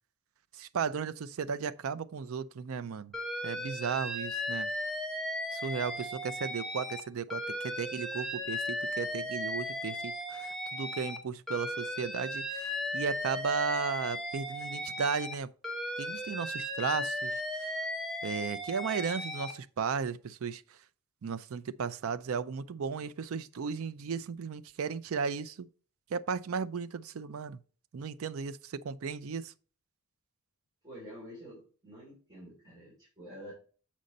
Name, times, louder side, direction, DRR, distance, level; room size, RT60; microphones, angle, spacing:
voice 1, 0.5-3.2 3.4-4.7 5.5-15.5 16.0-17.7 18.2-20.8 21.2-25.7 26.1-27.6 27.9-29.5, right 6 dB, 65° right, 0.4 m, -35 dB
Alarm, 3.1-7.0 7.3-11.2 11.5-15.3 15.6-19.5, left 1 dB, ahead, 0.8 m, -36 dB
voice 2, 30.8-33.5, equal, 15° right, 3.3 m, -48 dB
7.5 x 5.3 x 3.9 m
head